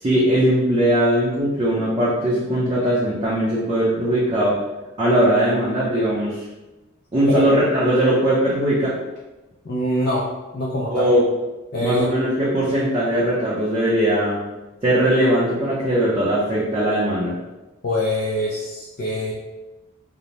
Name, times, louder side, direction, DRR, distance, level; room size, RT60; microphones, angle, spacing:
voice 1, 0.0-4.6 5.0-6.4 7.1-9.0 10.9-11.2 11.8-14.4 14.8-17.4, right 1 dB, 25° right, -9 dB, 0.5 m, -19 dB
voice 2, 9.6-10.2 10.5-11.1 11.7-12.1 17.8-19.3, left 1 dB, 50° left, -5 dB, 0.4 m, -24 dB
2.6 x 2.0 x 3.0 m, 1.1 s
head